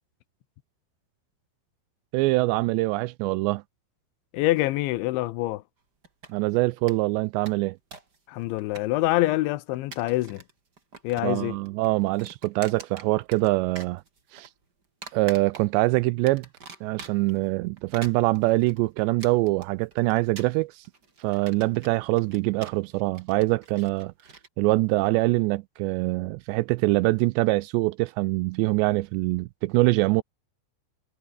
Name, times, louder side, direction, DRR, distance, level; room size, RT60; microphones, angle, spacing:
voice 1, 2.1-3.6 6.3-7.8 11.2-14.0 14.3-14.5 15.1-16.5 16.8-20.8 21.2-24.1 24.6-30.2, right 21 dB, 85° right, 2.6 m, -24 dB
voice 2, 4.3-5.6 8.3-10.4 11.0-11.6, left 17 dB, 85° left, 3.2 m, -25 dB
sound 1, 6.0-6.6 6.9-7.0 7.2-8.2 8.4-9.3 9.7-10.5 10.8-11.4 11.6-13.5 13.7-14.5 15.0-15.9 16.3-17.4 17.8-24.5, right 4 dB, 25° right, 3.2 m, -45 dB
omnidirectional pair, 5.4 m